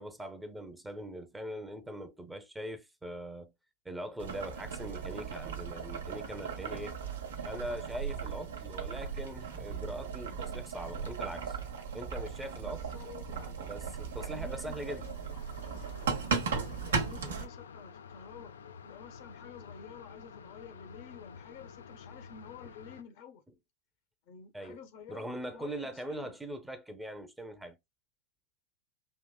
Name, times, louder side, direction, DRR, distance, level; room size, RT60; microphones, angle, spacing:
voice 1, 0.0-3.5 3.8-7.0 7.4-11.6 11.9-12.8 13.6-15.0 17.2-17.4 24.5-24.8 25.1-27.8, right 1 dB, 5° right, 0.8 m, -41 dB
Boiling, 4.2-17.5, right 5 dB, 65° right, 0.9 m, -37 dB
sound 1, 11.0-11.1 13.9-14.0 14.3-23.0, left 6 dB, 65° left, 0.4 m, -50 dB
voice 2, 12.6-13.7 14.2-15.2 16.4-18.6 18.8-23.4 24.3-26.4, left 6 dB, 45° left, 0.8 m, -51 dB
5.5 x 2.9 x 2.3 m
figure-of-eight pair, 90°, 0 cm